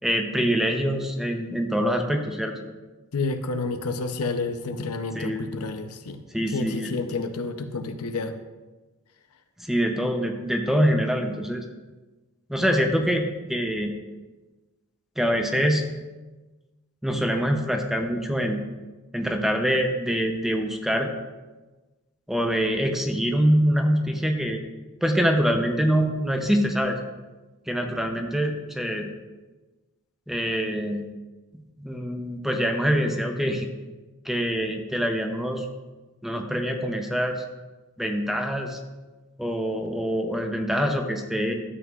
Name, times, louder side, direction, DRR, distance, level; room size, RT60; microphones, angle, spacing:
voice 1, 0.0-2.5 5.1-5.4 6.3-6.9 9.6-11.6 12.5-13.9 15.2-15.8 17.0-18.6 19.1-21.1 22.3-24.6 25.0-27.0 27.7-29.1 30.3-31.1 31.8-33.7 34.2-35.7 36.2-37.4 38.0-38.8 39.4-41.5, equal, ahead, 4 dB, 0.6 m, -24 dB
voice 2, 3.1-6.2 6.5-8.3, left 3 dB, 90° left, 7 dB, 0.7 m, -30 dB
12.5 x 7.7 x 2.4 m, 1.2 s
head